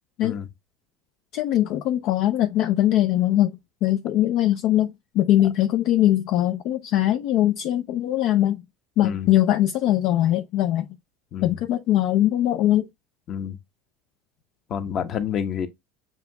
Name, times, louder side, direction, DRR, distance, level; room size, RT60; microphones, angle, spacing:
voice 1, 1.3-3.5 3.8-8.6 9.0-10.9 11.4-12.9, left 13 dB, 60° left, 0.4 m, -21 dB
voice 2, 9.0-9.3 11.3-11.6 13.3-13.6 14.7-15.7, left 8 dB, 45° left, 0.9 m, -28 dB
7.0 x 2.6 x 2.2 m
supercardioid pair, 105°, 0 cm